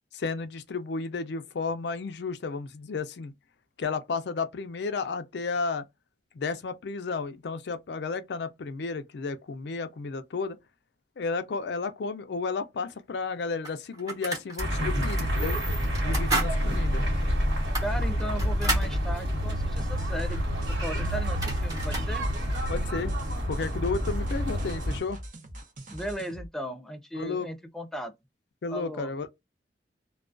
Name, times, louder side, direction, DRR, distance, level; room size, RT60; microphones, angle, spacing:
voice 1, 0.1-3.3 3.8-5.8 6.3-10.6 11.2-15.6 16.0-17.0 22.7-23.1 23.5-25.2 27.1-27.5 28.6-29.3, left 4 dB, 65° left, 0.4 m, -32 dB
sound 1, 12.9-13.0 13.6-14.7 15.0-15.3 15.8-16.5 16.9-17.0 17.6-18.9 20.9-21.0 21.2-22.1, right 2 dB, 20° right, 0.9 m, -32 dB
sound 2, 14.6-25.0, equal, 70° right, 1.3 m, -28 dB
voice 2, 17.8-22.3 25.9-28.1 28.7-29.1, equal, 5° left, 0.4 m, -36 dB
sound 3, 19.8-26.5, right 1 dB, 45° right, 0.7 m, -44 dB
2.3 x 2.2 x 2.4 m
head